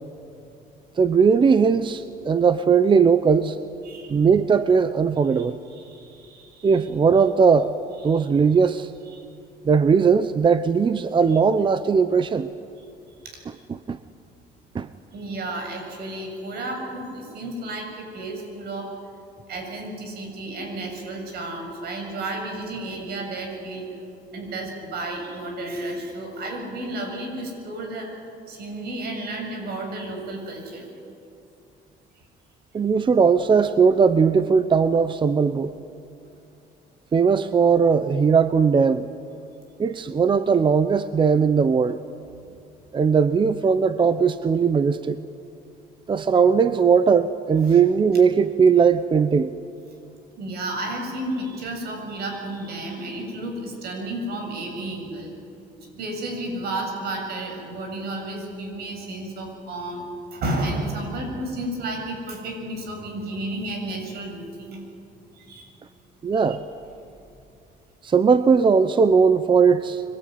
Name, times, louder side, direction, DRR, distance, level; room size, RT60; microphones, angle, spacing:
voice 1, 1.0-3.6 4.1-5.6 6.6-7.7 8.0-8.9 9.6-12.5 13.7-14.0 14.7-14.9 32.7-35.7 37.1-39.1 39.8-42.0 42.9-45.2 46.1-49.5 66.2-66.6 68.0-70.0, right 5 dB, 30° right, 13 dB, 0.8 m, -19 dB
voice 2, 3.8-4.2 5.3-5.4 5.7-6.9 8.1-8.3 9.1-9.2 13.2-13.4 15.1-18.9 19.5-23.9 24.3-28.1 28.5-30.9 47.7-47.8 50.4-55.3 55.8-60.0 60.3-64.8 65.3-65.8 66.3-66.6, right 1 dB, 70° right, 3 dB, 7.3 m, -32 dB
26.5 x 21.5 x 9.5 m, 2.6 s
cardioid pair, 110°, 17 cm